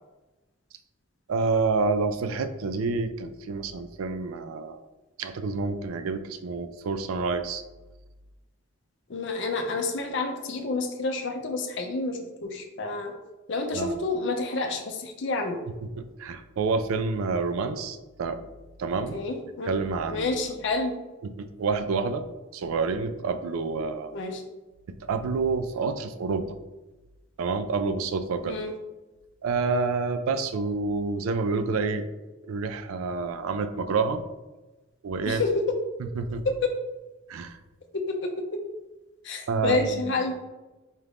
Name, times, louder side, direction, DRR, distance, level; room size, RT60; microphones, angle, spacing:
voice 1, 1.3-4.8 5.2-7.6 13.7-14.0 16.0-18.4 18.8-19.2 19.7-20.3 21.2-22.2 22.5-24.1 25.0-26.5 27.4-28.6 29.4-32.1 32.4-34.2 35.0-35.4 36.2-36.4 37.3-37.6 39.5-40.2, right 4 dB, 85° right, 10 dB, 0.4 m, -28 dB
voice 2, 9.1-13.1 13.5-15.6 19.1-19.7 20.1-20.9 24.1-24.4 28.4-28.7 35.3-35.5 39.2-40.4, left 3 dB, 60° left, 3 dB, 0.5 m, -29 dB
4.2 x 2.4 x 3.4 m, 1.1 s
head